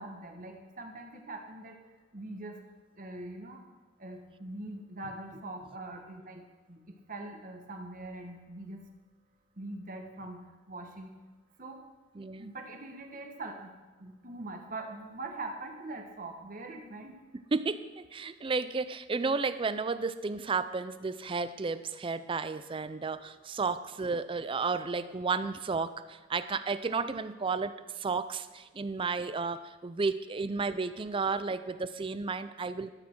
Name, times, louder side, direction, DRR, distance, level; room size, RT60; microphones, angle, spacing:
voice 1, 0.0-1.8 2.1-2.6 3.0-3.6 4.0-6.8 7.1-8.8 9.6-11.1 11.6-11.8 12.4-13.7 14.0-17.2, right 2 dB, 45° right, 4 dB, 1.2 m, -42 dB
voice 2, 12.1-12.5 17.3-32.9, right 4 dB, 25° right, 13 dB, 0.4 m, -33 dB
13.0 x 8.5 x 4.5 m, 1.2 s
head